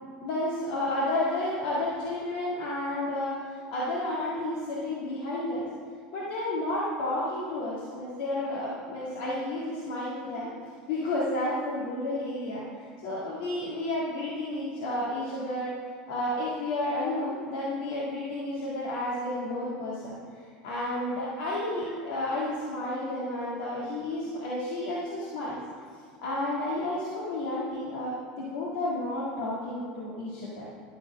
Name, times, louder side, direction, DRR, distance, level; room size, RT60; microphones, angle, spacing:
voice 1, 0.0-5.7 6.1-10.5 10.9-15.7 16.1-20.2 20.6-25.6 26.2-30.7, left 1 dB, 75° left, -6 dB, 1.7 m, -31 dB
12.0 x 4.4 x 7.3 m, 2.1 s
supercardioid pair, 140°, 4 cm